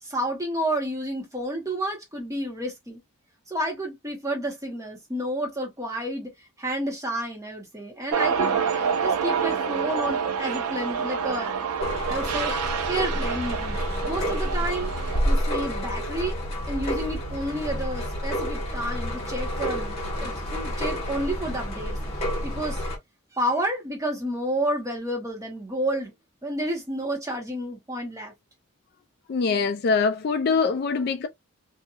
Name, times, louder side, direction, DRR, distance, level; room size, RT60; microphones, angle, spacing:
voice 1, 0.0-3.0 3.5-6.3 6.6-11.5 12.1-12.6 12.9-13.8 14.1-14.9 15.2-16.4 16.7-22.0 22.4-22.8 23.3-26.1 26.4-28.3, right 1 dB, 15° right, 1.0 m, -30 dB
sound 1, 8.1-15.2, right 6 dB, 90° right, 0.5 m, -27 dB
sound 2, 11.8-23.0, equal, 30° left, 1.2 m, -29 dB
voice 2, 29.3-31.3, left 4 dB, 45° left, 0.3 m, -23 dB
2.7 x 2.5 x 2.4 m
head